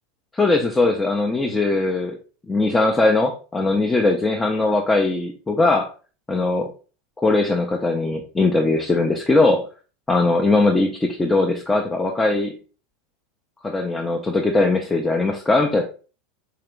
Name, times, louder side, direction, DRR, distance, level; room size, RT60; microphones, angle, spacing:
voice 1, 0.3-2.2 2.5-5.9 6.3-6.7 7.2-9.7 10.1-12.5 13.6-15.8, left 2 dB, 15° left, 0 dB, 0.5 m, -20 dB
3.7 x 2.8 x 3.3 m, 0.37 s
hypercardioid pair, 95°, 0 cm